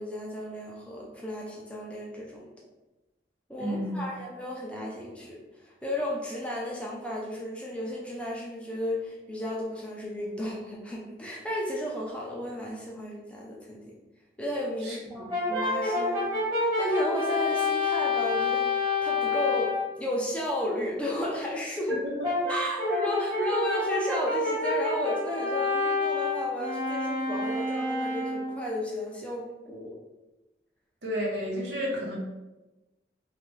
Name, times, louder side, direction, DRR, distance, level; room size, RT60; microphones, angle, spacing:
voice 1, 0.0-2.5 3.5-14.0 14.4-22.0 22.5-29.9, left 1 dB, 5° left, -3 dB, 0.4 m, -33 dB
voice 2, 3.6-4.1 14.8-15.3 22.2-22.3 31.0-32.2, equal, 80° right, -4 dB, 1.0 m, -32 dB
Brass instrument, 15.3-19.9 22.2-28.6, left 3 dB, 25° right, 1.1 m, -28 dB
3.0 x 2.5 x 3.1 m, 1.1 s
head